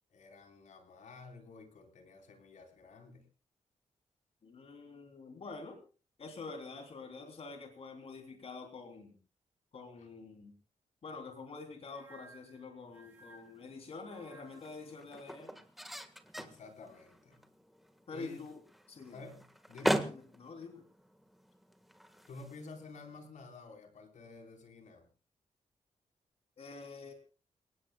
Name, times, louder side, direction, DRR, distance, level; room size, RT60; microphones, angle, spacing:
voice 1, 0.1-3.2 10.0-10.1 16.4-17.4 18.1-18.4 19.1-20.2 22.3-25.1, left 3 dB, 80° left, 4 dB, 4.4 m, -51 dB
voice 2, 4.4-5.8 6.2-9.1 9.7-10.5 11.0-15.6 18.1-18.6 18.9-19.2 19.9-20.8 26.6-27.1, left 4 dB, 55° left, 4 dB, 3.4 m, -47 dB
sound 1, 11.8-14.9, right 2 dB, 15° right, 4.6 m, -59 dB
sound 2, 12.9-23.3, equal, ahead, 1.6 m, -41 dB
28.5 x 18.0 x 2.3 m, 0.33 s
wide cardioid pair, 135°, 12 cm